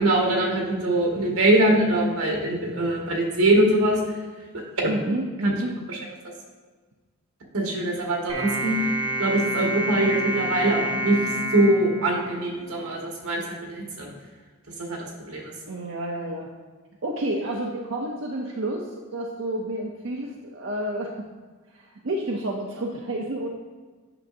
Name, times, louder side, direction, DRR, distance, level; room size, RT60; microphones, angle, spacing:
voice 1, 0.0-4.0 4.8-4.9 5.9-6.0 7.5-8.9 9.2-11.2 11.5-14.1 14.8-15.0 15.3-15.5, right 1 dB, 85° right, -1 dB, 1.6 m, -22 dB
voice 2, 4.9-5.8 15.7-16.5 17.0-21.3 21.7-23.5, right 1 dB, 60° right, -1 dB, 0.6 m, -30 dB
sound 1, 8.3-12.8, right 1 dB, 30° right, 2.0 m, -29 dB
8.9 x 5.8 x 2.6 m, 1.4 s
head